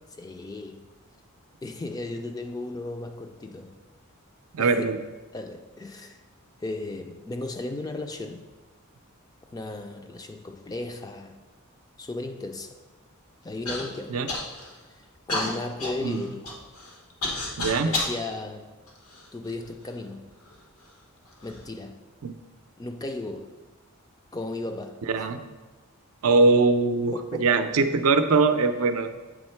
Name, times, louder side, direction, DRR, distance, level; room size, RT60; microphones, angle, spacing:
voice 1, 0.2-0.9 1.6-3.8 4.6-4.9 5.3-6.2 6.6-8.5 9.5-11.4 12.0-12.8 13.4-14.2 14.9-15.0 15.3-16.5 17.8-18.8 19.3-20.4 21.4-22.0 22.8-23.6 24.3-25.0 27.1-27.6, left 2 dB, 15° left, 0.3 m, -35 dB
voice 2, 4.5-5.0 14.1-14.3 16.0-16.2 17.6-17.9 22.2-22.4 25.1-25.4 26.2-29.1, right 3 dB, 80° right, 0.5 m, -22 dB
Human voice / Cough, 13.7-13.8 14.3-14.8 15.3-18.2 18.9-19.7 20.5-20.6 21.3-21.6, left 2 dB, 90° left, 1.1 m, -31 dB
8.1 x 3.6 x 4.4 m
head